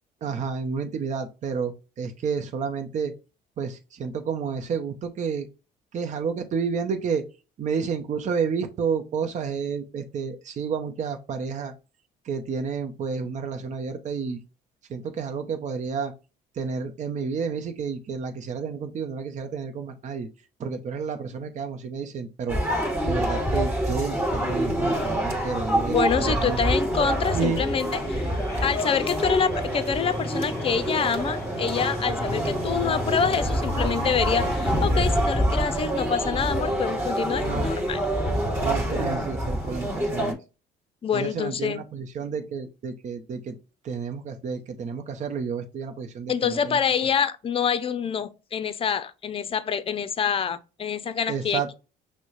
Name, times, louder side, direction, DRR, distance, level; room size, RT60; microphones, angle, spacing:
voice 1, 0.2-3.1 3.6-5.5 5.9-7.2 7.6-11.7 12.2-14.4 14.9-16.1 16.5-20.3 20.6-22.6 23.1-26.6 27.3-27.6 37.4-37.7 38.6-40.4 41.1-43.6 43.8-46.8 51.3-51.8, right 6 dB, 45° right, 0.8 m, -30 dB
sound 1, 22.5-40.3, equal, 15° right, 2.3 m, -26 dB
voice 2, 25.9-28.3 28.6-38.0 41.0-41.8 46.3-51.6, left 7 dB, 35° left, 0.6 m, -26 dB
sound 2, 27.1-35.5, left 2 dB, 15° left, 1.4 m, -43 dB
6.0 x 2.2 x 3.2 m
cardioid pair, 110°, 17 cm